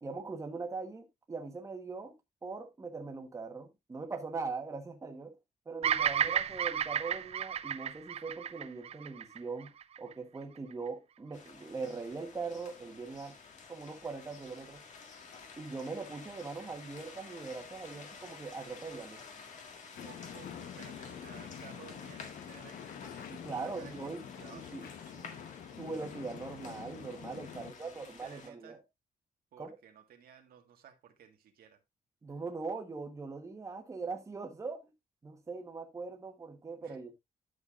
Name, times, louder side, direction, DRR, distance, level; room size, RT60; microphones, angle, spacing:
voice 1, 0.0-2.1 2.4-5.3 5.7-9.7 10.0-13.4 13.7-14.8 15.6-19.2 23.3-24.2 24.5-24.8 25.8-28.8 29.6-29.7 32.2-34.9 35.2-37.1, right 4 dB, 20° right, 1.3 m, -41 dB
Bird vocalization bird call bird song, 5.8-10.1, right 8 dB, 45° right, 0.4 m, -32 dB
sound 1, 11.3-28.5, left 5 dB, 55° left, 1.8 m, -52 dB
sound 2, 20.0-27.7, left 8 dB, 85° left, 1.1 m, -47 dB
voice 2, 20.0-26.1 27.5-28.8 29.5-31.8 36.8-37.0, right 9 dB, 85° right, 1.7 m, -56 dB
11.0 x 6.7 x 2.5 m
wide cardioid pair, 175°, 15 cm